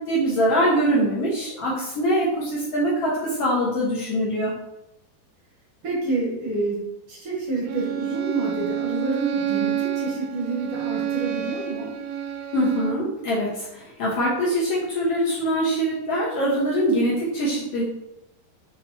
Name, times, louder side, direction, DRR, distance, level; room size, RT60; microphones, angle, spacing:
voice 1, 0.1-4.5 12.5-17.8, equal, 75° left, -6 dB, 1.4 m, -23 dB
voice 2, 5.8-11.9, right 2 dB, 60° right, -4 dB, 1.5 m, -28 dB
Bowed string instrument, 7.7-13.1, right 10 dB, 80° right, 2.3 m, -28 dB
7.5 x 3.0 x 4.3 m, 0.88 s
omnidirectional pair, 4.6 m